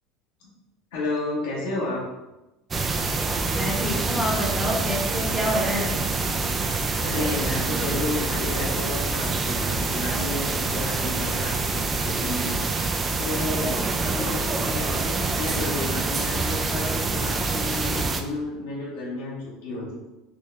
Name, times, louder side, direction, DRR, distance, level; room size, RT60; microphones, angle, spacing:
voice 1, 0.9-2.0 7.0-11.6 12.0-12.6 13.2-20.0, left 2 dB, 90° left, -6 dB, 1.1 m, -32 dB
sound 1, 2.7-18.2, right 3 dB, 20° right, 0.4 m, -26 dB
voice 2, 3.5-5.9, equal, ahead, -2 dB, 0.9 m, -27 dB
3.7 x 2.8 x 3.2 m, 1.0 s
supercardioid pair, 120°, 0 cm